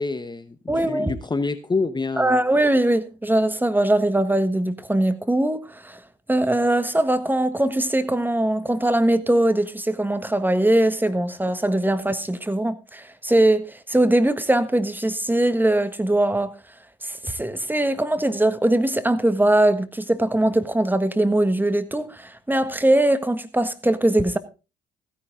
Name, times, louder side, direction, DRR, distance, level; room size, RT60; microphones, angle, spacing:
voice 1, 0.0-2.4, left 3 dB, 20° left, 1.0 m, -27 dB
voice 2, 0.7-1.2 2.2-6.0 6.3-16.5 17.0-24.4, right 1 dB, 10° right, 1.5 m, -21 dB
16.0 x 10.0 x 3.7 m
supercardioid pair, 60°, 19 cm